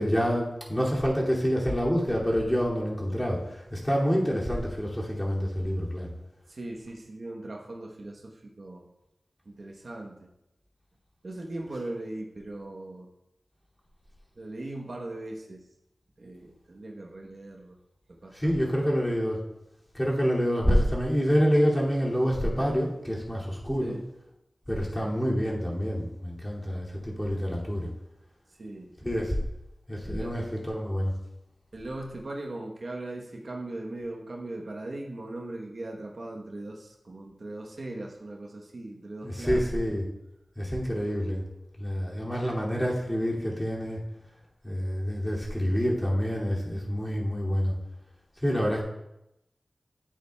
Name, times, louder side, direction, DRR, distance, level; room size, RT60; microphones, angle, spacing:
voice 1, 0.0-6.1 18.3-19.4 19.9-24.0 24.7-27.9 29.0-29.4 29.9-31.1 39.2-40.0 40.6-41.4 41.8-44.0 44.6-47.7 48.4-48.8, equal, 10° left, -5 dB, 2.5 m, -27 dB
voice 2, 6.5-8.9 9.5-10.3 11.2-13.1 14.4-15.6 16.2-17.8 18.2-18.9 23.8-24.1 24.7-25.2 28.6-28.9 30.1-30.4 31.7-39.8, right 2 dB, 60° right, 0 dB, 1.0 m, -39 dB
10.0 x 8.3 x 2.3 m, 0.88 s
wide cardioid pair, 60°, 0 cm